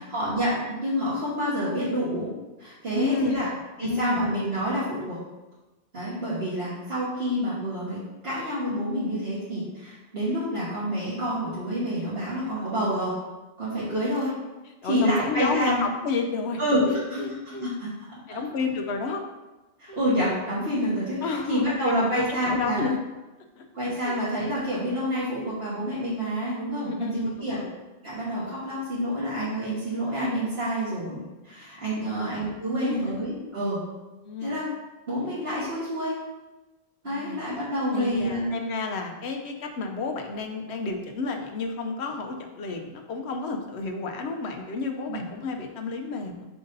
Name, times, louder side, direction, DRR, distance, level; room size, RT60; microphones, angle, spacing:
voice 1, 0.0-2.3 2.6-3.5 3.8-5.2 5.9-8.0 8.2-13.1 13.6-14.4 14.8-15.8 16.6-16.8 17.1-17.9 19.8-22.9 23.7-27.1 27.4-27.6 28.0-33.8 34.4-34.7 35.1-36.1 37.0-38.5 45.1-45.2, equal, 65° right, -10 dB, 1.7 m, -28 dB
voice 2, 2.9-3.5 3.8-4.2 14.8-16.6 16.9-17.7 18.3-19.2 19.9-20.0 21.2-23.0 23.6-23.7 24.0-24.1 26.9-27.8 32.0-32.6 32.8-33.2 34.2-34.6 35.2-35.3 37.0-37.4 37.9-46.5, left 4 dB, 90° left, 4 dB, 1.0 m, -31 dB
4.8 x 3.9 x 5.3 m, 1.1 s
omnidirectional pair, 1.1 m